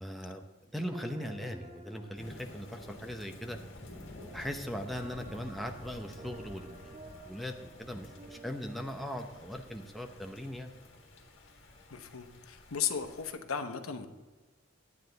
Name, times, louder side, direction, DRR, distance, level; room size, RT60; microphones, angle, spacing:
voice 1, 0.0-0.4 0.7-3.6 4.3-10.7, equal, ahead, 3 dB, 0.7 m, -39 dB
sound 1, 0.9-11.9, right 1 dB, 30° right, 1.5 m, -53 dB
Thunder / Rain, 2.2-13.3, left 1 dB, 60° left, 1.7 m, -51 dB
voice 2, 11.9-14.1, left 7 dB, 85° left, 7 dB, 0.9 m, -36 dB
9.9 x 9.6 x 4.0 m, 1.2 s
head